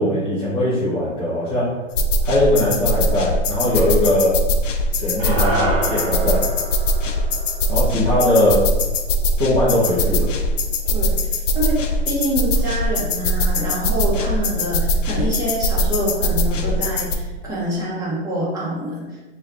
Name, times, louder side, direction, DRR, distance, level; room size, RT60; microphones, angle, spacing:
voice 1, 0.0-1.7 2.2-4.3 4.9-6.4 7.7-8.6 9.4-10.3, left 1 dB, 10° left, -10 dB, 0.3 m, -20 dB
sound 1, 2.0-17.2, equal, 85° left, 0.5 m, -21 dB
sound 2, 5.2-9.7, right 2 dB, 45° right, 0.7 m, -29 dB
voice 2, 10.9-19.2, right 1 dB, 10° right, -7 dB, 0.8 m, -26 dB
3.1 x 2.3 x 3.6 m, 1.2 s
hypercardioid pair, 135°, 36 cm